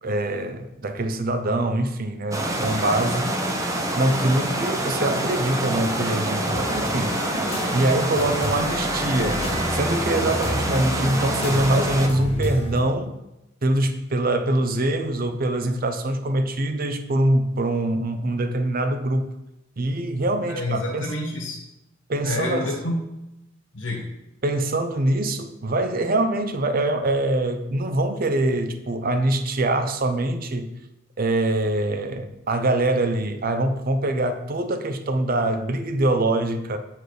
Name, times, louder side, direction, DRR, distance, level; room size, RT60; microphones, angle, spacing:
voice 1, 0.0-3.3 3.9-7.2 7.7-13.1 13.6-19.3 19.8-21.1 22.1-22.7 24.4-30.7 31.2-36.8, right 1 dB, 50° right, 8 dB, 0.6 m, -24 dB
sound 1, 2.3-12.1, right 1 dB, 15° right, 0.8 m, -26 dB
sound 2, 6.5-12.8, equal, 30° left, 1.0 m, -31 dB
voice 2, 20.4-21.6 22.2-23.0 23.7-24.1, left 1 dB, 65° left, -2 dB, 1.6 m, -28 dB
7.8 x 4.6 x 4.9 m, 0.91 s
head